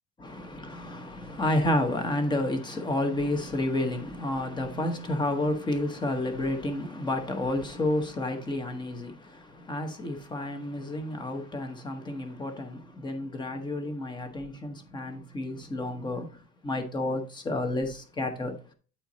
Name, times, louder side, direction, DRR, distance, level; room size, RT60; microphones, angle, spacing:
voice 1, 0.2-16.4 16.6-18.6, left 1 dB, 15° left, 0.9 m, -30 dB
8.6 x 4.5 x 4.0 m
cardioid pair, 170°, 33 cm